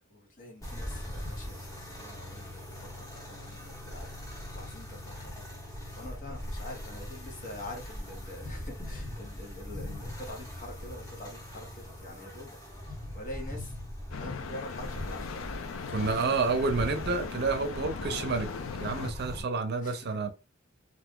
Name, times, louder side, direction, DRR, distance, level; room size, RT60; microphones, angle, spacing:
voice 1, 0.1-2.9 3.1-5.4 6.0-13.7 14.2-15.4 16.1-16.2 19.8-20.2, left 1 dB, 40° left, 1.0 m, -45 dB
sound 1, 0.6-19.4, left 1 dB, 15° left, 1.1 m, -41 dB
sound 2, 14.1-19.1, left 5 dB, 75° left, 0.4 m, -39 dB
voice 2, 15.9-18.5 18.8-20.3, right 4 dB, 55° right, 0.5 m, -29 dB
2.5 x 2.3 x 3.6 m
head